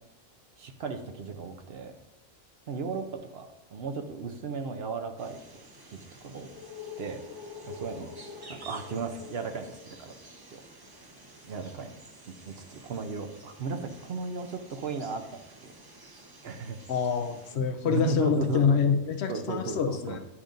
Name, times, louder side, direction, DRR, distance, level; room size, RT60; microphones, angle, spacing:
voice 1, 0.6-1.9 2.7-3.1 3.3-5.4 5.9-6.5 7.0-7.2 7.6-8.1 8.5-10.1 10.5-10.6 11.4-11.9 12.3-15.4 16.4-16.8 17.5-18.8 19.3-20.2, right 5 dB, 60° right, 7 dB, 0.8 m, -35 dB
sound 1, 5.2-17.5, left 2 dB, 25° right, 0.6 m, -48 dB
voice 2, 16.9-20.2, left 7 dB, 65° left, 7 dB, 0.8 m, -26 dB
9.8 x 5.1 x 2.5 m, 0.94 s
omnidirectional pair, 1.4 m